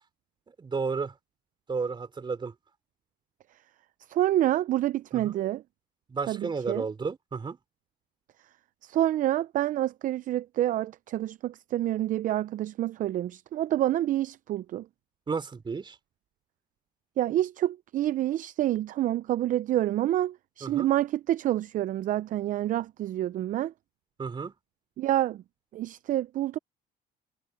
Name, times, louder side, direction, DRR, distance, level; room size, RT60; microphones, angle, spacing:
voice 1, 0.6-1.1 1.7-2.5 5.1-5.4 6.1-7.6 15.3-16.0 20.6-20.9 24.2-24.5, right 4 dB, 30° right, 3.4 m, -32 dB
voice 2, 4.1-5.6 6.3-6.9 8.8-14.9 17.2-23.7 25.0-25.4 25.7-26.6, right 13 dB, 50° right, 0.4 m, -28 dB
cardioid pair, 110°, 17 cm